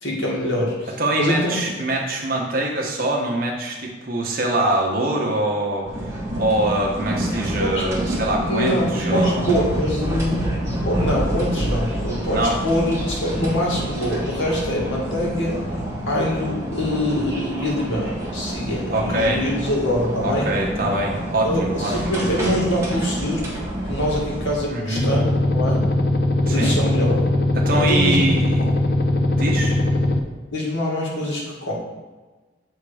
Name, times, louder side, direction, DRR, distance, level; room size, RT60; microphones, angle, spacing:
voice 1, 0.0-1.6 7.6-7.8 8.4-10.4 10.8-15.7 16.1-20.5 21.4-23.4 23.9-25.8 26.5-27.3 27.7-28.2 28.6-28.7 30.5-31.7, left 1 dB, 90° left, -4 dB, 2.1 m, -24 dB
voice 2, 1.0-5.9 6.4-9.5 12.3-12.6 18.9-19.4 20.2-22.1 24.7-25.1 26.5-26.8 27.5-28.7 29.4-29.8, right 1 dB, 50° right, -1 dB, 1.2 m, -23 dB
sound 1, 5.9-24.6, right 1 dB, 15° right, 1.3 m, -27 dB
sound 2, 25.0-30.2, left 1 dB, 60° left, 0.6 m, -20 dB
7.3 x 3.7 x 4.9 m, 1.3 s
head